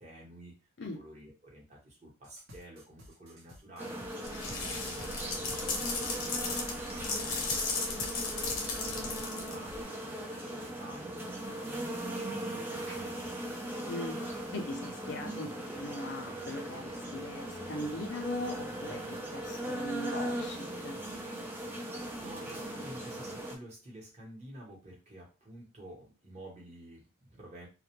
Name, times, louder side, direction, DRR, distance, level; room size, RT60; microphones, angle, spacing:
voice 1, 0.0-13.6 21.9-27.7, right 1 dB, 30° right, -3 dB, 1.0 m, -51 dB
sound 1, 2.2-4.6 5.0-7.6 8.0-8.6, left 1 dB, 70° right, 0.9 m, -51 dB
sound 2, 3.8-23.6, right 1 dB, 10° right, 0.3 m, -39 dB
sound 3, 4.2-9.8, left 3 dB, 90° left, 0.8 m, -35 dB
voice 2, 13.8-21.0, left 2 dB, 55° left, 3 dB, 0.4 m, -40 dB
2.3 x 2.1 x 2.9 m, 0.29 s
head